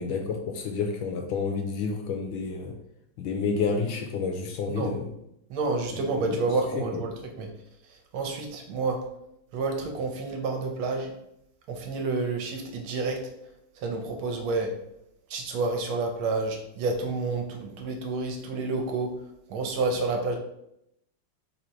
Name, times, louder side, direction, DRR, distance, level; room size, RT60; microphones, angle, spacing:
voice 1, 0.0-2.8 3.2-5.1 6.3-6.4 6.7-7.0, left 5 dB, 75° left, 4 dB, 1.3 m, -30 dB
voice 2, 5.5-7.5 8.1-9.0 9.5-11.1 11.7-13.2 13.8-14.7 15.3-19.1 19.5-20.4, right 3 dB, 75° right, 3 dB, 1.5 m, -29 dB
4.0 x 2.8 x 4.3 m, 0.79 s
omnidirectional pair, 2.4 m